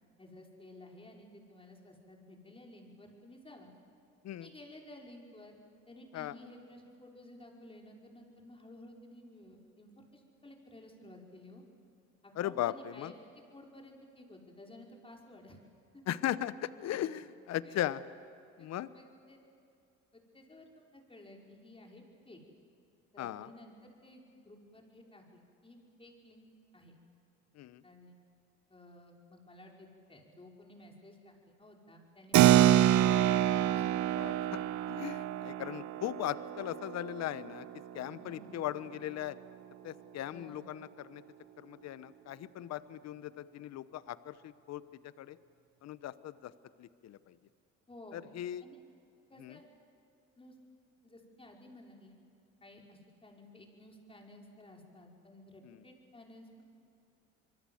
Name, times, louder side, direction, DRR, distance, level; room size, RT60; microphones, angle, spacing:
voice 1, 0.2-3.7 4.4-5.6 5.9-11.6 12.2-13.1 13.5-15.6 15.9-16.0 17.6-17.8 18.6-18.7 18.9-19.4 20.1-22.4 23.1-26.5 26.7-26.9 27.8-28.1 28.7-33.4 33.7-33.9 38.2-38.5 40.3-40.6 47.9-48.2 48.6-48.8 49.3-49.7 50.4-50.5 51.0-52.2 52.6-56.6, left 1 dB, 15° left, 0 dB, 5.4 m, -54 dB
voice 2, 12.4-13.1 16.1-18.0 18.6-18.9 23.2-23.5 27.5-27.8 32.5-32.6 34.1-37.7 37.9-39.4 39.8-41.2 41.6-45.4 45.8-46.5 46.8-47.4 48.1-48.6 49.4-49.6 55.6-55.8, left 12 dB, 55° left, 16 dB, 1.0 m, -38 dB
Keyboard (musical), 32.3-38.4, right 12 dB, 60° right, 1.0 m, -27 dB
26.5 x 22.5 x 7.9 m, 2.5 s
supercardioid pair, 75°, 32 cm